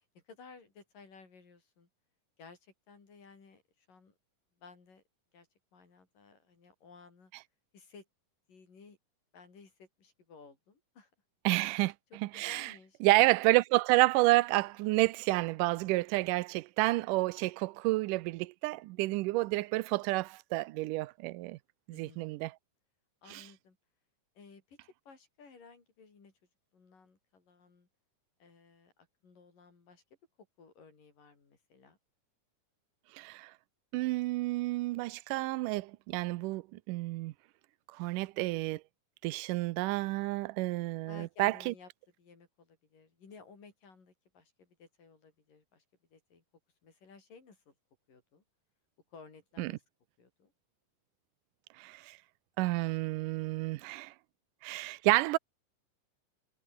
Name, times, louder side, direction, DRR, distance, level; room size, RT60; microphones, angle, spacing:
voice 1, 0.0-1.9 2.4-4.1 4.6-5.0 5.3-7.3 7.7-8.1 8.5-9.0 9.3-11.1 11.5-11.7 12.1-13.0 21.9-22.5 23.2-23.8 24.4-26.3 26.7-27.9 28.4-28.9 29.2-30.0 30.6-32.0 41.1-41.9 42.2-45.8 46.1-46.4 46.8-47.7 48.1-48.4 49.1-49.8 50.2-50.5, left 5 dB, 75° left, 7.0 m, -56 dB
voice 2, 11.5-11.9 12.3-12.7 13.0-21.6 21.9-22.5 23.3-23.4 33.1-33.5 33.9-37.3 38.0-38.8 39.2-41.7 49.6-49.7 51.8-52.2 52.6-54.1 54.6-55.4, right 20 dB, 80° right, 2.2 m, -30 dB
omnidirectional pair, 3.9 m